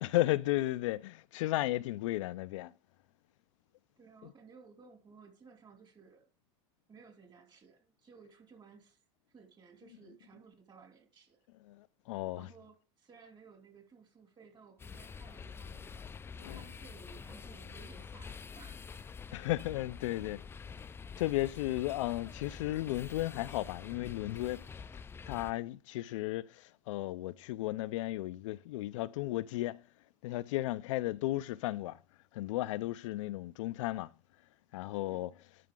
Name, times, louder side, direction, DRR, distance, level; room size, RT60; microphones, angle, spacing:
voice 1, 0.0-2.7 11.7-12.5 16.4-16.6 19.3-20.4 21.2-24.6 25.3-29.8 30.2-32.0 32.3-34.1 34.7-35.3, left 16 dB, 85° left, 0.5 m, -34 dB
voice 2, 4.0-6.3 6.9-9.0 9.3-11.4 12.3-16.1 16.4-18.9 35.1-35.4, right 5 dB, 30° right, 2.8 m, -58 dB
sound 1, 14.8-25.5, left 5 dB, 15° left, 0.4 m, -47 dB
11.0 x 5.9 x 3.7 m
supercardioid pair, 115°, 16 cm